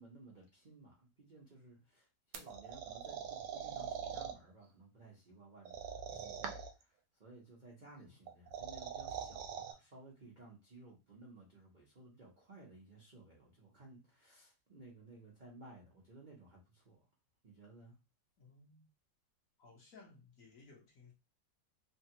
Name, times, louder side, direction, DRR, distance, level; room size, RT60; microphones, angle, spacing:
voice 1, 0.0-17.0 17.4-18.0, right 2 dB, 45° right, 0.6 m, -57 dB
sound 1, 2.3-4.3 5.6-6.8 8.3-9.7, right 7 dB, 80° right, 1.2 m, -43 dB
voice 2, 18.4-18.9 19.6-21.1, left 4 dB, 55° left, 1.3 m, -60 dB
3.3 x 2.3 x 2.7 m
omnidirectional pair, 1.9 m